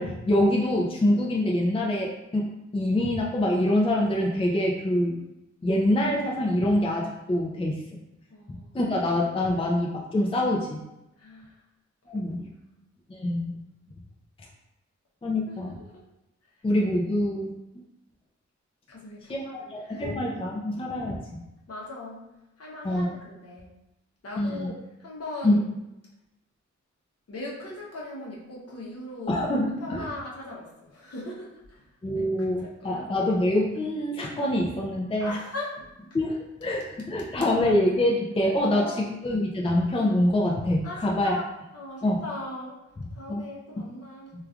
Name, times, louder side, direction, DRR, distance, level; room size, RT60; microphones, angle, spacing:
voice 1, 0.0-2.5 2.7-5.2 5.6-7.8 8.5-10.8 12.1-12.4 13.1-13.5 15.2-15.7 16.6-17.5 19.3-21.4 22.8-23.1 24.4-24.7 25.4-25.6 29.3-30.0 32.0-35.3 36.1-41.4 42.0-42.2 43.3-43.4, left 1 dB, 20° left, -3 dB, 0.4 m, -25 dB
voice 2, 8.3-8.7 11.2-11.6 12.1-12.3 12.7-12.8 15.5-16.0 18.9-20.1 21.7-23.7 24.2-25.7 27.3-29.5 29.8-33.3 35.2-35.9 38.6-39.1 40.8-41.5 41.7-42.8 43.1-44.3, left 2 dB, 55° left, -4 dB, 0.8 m, -40 dB
3.1 x 2.3 x 2.4 m, 0.93 s
cardioid pair, 70°, 29 cm